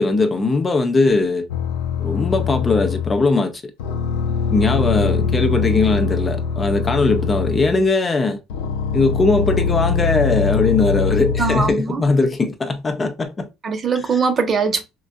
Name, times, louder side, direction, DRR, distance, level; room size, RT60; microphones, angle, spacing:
voice 1, 0.0-1.5 2.0-3.6 4.5-8.4 8.9-13.5 13.9-14.1, left 3 dB, 30° left, 0.6 m, -19 dB
sound 1, 1.5-3.3 3.8-7.9 8.5-11.7, left 5 dB, 85° left, 0.5 m, -22 dB
voice 2, 11.4-12.0 13.6-14.8, right 5 dB, 40° right, 0.9 m, -21 dB
3.8 x 2.5 x 2.2 m
supercardioid pair, 80°, 0 cm